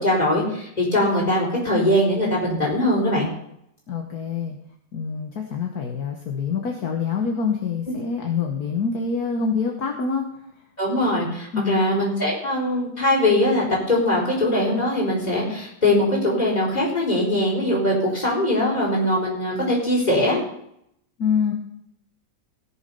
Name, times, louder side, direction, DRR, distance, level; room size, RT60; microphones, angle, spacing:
voice 1, 0.0-3.3 10.8-20.4, left 1 dB, 20° left, -3 dB, 4.5 m, -21 dB
voice 2, 3.9-4.6 4.9-10.2 11.5-11.8 21.2-21.5, left 6 dB, 60° left, 2 dB, 1.7 m, -25 dB
17.0 x 7.1 x 5.5 m, 0.76 s
omnidirectional pair, 1.9 m